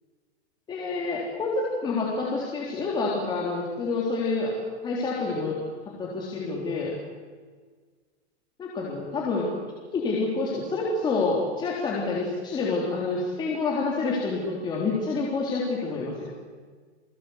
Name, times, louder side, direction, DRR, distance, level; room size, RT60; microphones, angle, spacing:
voice 1, 0.7-4.5 4.8-5.6 5.9-6.9 8.6-9.5 9.9-16.3, left 3 dB, 15° left, -4 dB, 3.7 m, -28 dB
29.5 x 22.0 x 8.2 m, 1.5 s
supercardioid pair, 170°, 33 cm